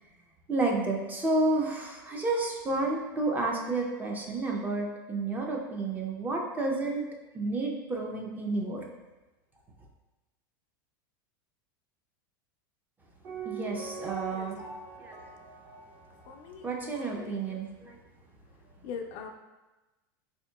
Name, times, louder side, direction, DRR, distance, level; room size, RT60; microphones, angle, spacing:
voice 1, 0.5-7.1 7.3-8.8 13.4-14.6 15.0-15.2 16.6-18.0, right 2 dB, 15° right, -1 dB, 0.5 m, -30 dB
Piano, 13.2-17.0 17.3-17.4, right 6 dB, 50° right, 1.4 m, -42 dB
voice 2, 16.3-17.3 18.8-19.3, left 6 dB, 50° left, 4 dB, 0.4 m, -42 dB
4.2 x 2.8 x 2.3 m, 1.1 s
hypercardioid pair, 115°, 12 cm